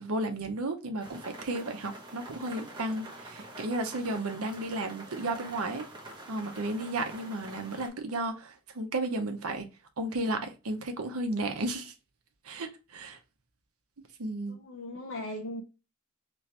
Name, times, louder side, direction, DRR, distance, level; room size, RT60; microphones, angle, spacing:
voice 1, 0.0-5.9 6.3-9.7 10.0-11.9 12.4-13.2 14.2-14.6, right 2 dB, 85° right, 0.8 m, -33 dB
sound 1, 1.0-7.9, right 1 dB, 20° right, 1.0 m, -46 dB
voice 2, 14.5-15.6, left 1 dB, 60° left, 0.7 m, -38 dB
3.1 x 2.8 x 3.2 m
head